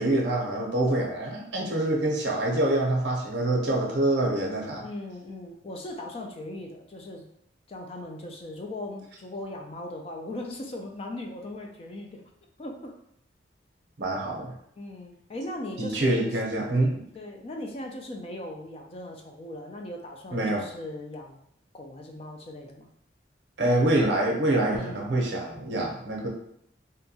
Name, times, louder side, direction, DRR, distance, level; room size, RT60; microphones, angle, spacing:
voice 1, 0.0-4.9 14.0-14.5 15.8-17.0 20.3-20.6 23.6-26.3, right 1 dB, 70° right, -1 dB, 0.6 m, -25 dB
voice 2, 4.8-7.3 7.7-12.2 12.6-12.9 14.8-16.4 17.2-21.4 21.7-22.9 24.7-25.1, left 1 dB, 30° left, 2 dB, 0.3 m, -38 dB
2.7 x 2.2 x 2.7 m, 0.71 s
head